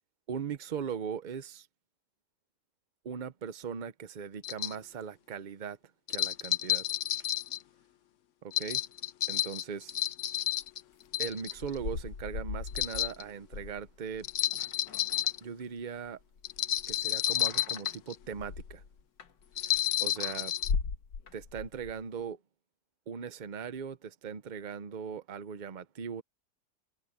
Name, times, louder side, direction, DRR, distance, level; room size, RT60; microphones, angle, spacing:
voice 1, 0.3-1.7 3.0-5.8 6.1-6.9 8.4-8.8 9.3-9.9 11.2-14.3 15.4-16.2 16.9-18.8 19.6-20.5 21.3-22.4 23.1-26.2, right 7 dB, 45° right, 0.6 m, -39 dB
sound 1, 4.4-4.7 6.1-7.6 8.5-10.8 11.1-11.7 12.7-13.2 14.2-15.4 16.4-18.1 19.6-20.7, left 12 dB, 60° left, 0.8 m, -31 dB
sound 2, 11.3-15.8 16.1-19.8 20.2-22.0, left 5 dB, 90° left, 2.4 m, -39 dB
omnidirectional pair, 1.9 m